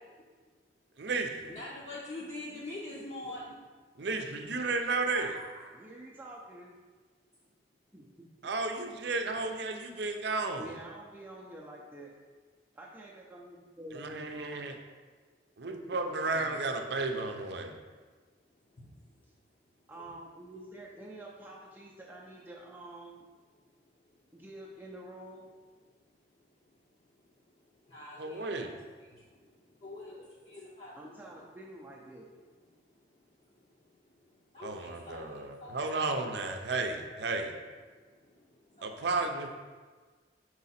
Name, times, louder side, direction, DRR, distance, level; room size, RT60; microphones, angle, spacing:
voice 1, 1.0-1.6 4.0-5.4 8.4-10.7 13.9-14.7 15.6-17.7 28.2-28.7 34.6-37.5 38.8-39.5, right 3 dB, 65° right, 5 dB, 0.6 m, -33 dB
voice 2, 1.5-3.6 18.8-19.0 27.9-28.7 29.0-31.0 34.5-36.0 38.0-39.3, left 2 dB, 35° left, -7 dB, 0.7 m, -45 dB
voice 3, 2.9-3.4 5.1-6.8 7.9-8.5 10.6-12.1 12.7-14.8 15.6-16.7 19.2-19.3 19.9-23.2 24.3-25.5 31.0-32.3, right 1 dB, 10° right, -4 dB, 0.5 m, -48 dB
5.0 x 4.7 x 4.2 m, 1.5 s
head